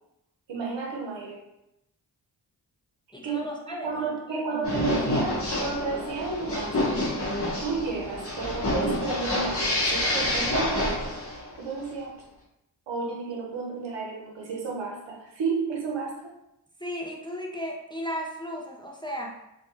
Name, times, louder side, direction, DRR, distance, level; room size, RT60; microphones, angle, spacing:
voice 1, 0.5-1.4 3.2-3.5 3.8-6.9 7.6-12.1 12.9-16.3, right 5 dB, 80° right, -1 dB, 0.8 m, -32 dB
voice 2, 3.1-4.8 16.8-19.4, equal, 10° left, -1 dB, 0.4 m, -36 dB
sound 1, 4.6-11.5, left 1 dB, 30° left, 0.8 m, -28 dB
2.3 x 2.2 x 2.8 m, 0.87 s
cardioid pair, 45°, 44 cm